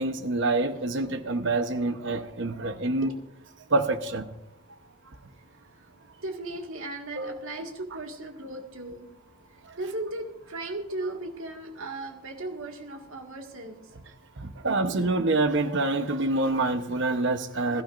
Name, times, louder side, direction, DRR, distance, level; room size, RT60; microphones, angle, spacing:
voice 1, 0.0-3.1 3.7-4.2 7.2-7.4 14.4-17.8, right 2 dB, 60° right, 0.9 m, -26 dB
voice 2, 2.7-3.2 5.8-5.9 6.2-9.1 9.8-13.8, right 2 dB, 80° right, 1.9 m, -37 dB
21.5 x 12.0 x 2.6 m
head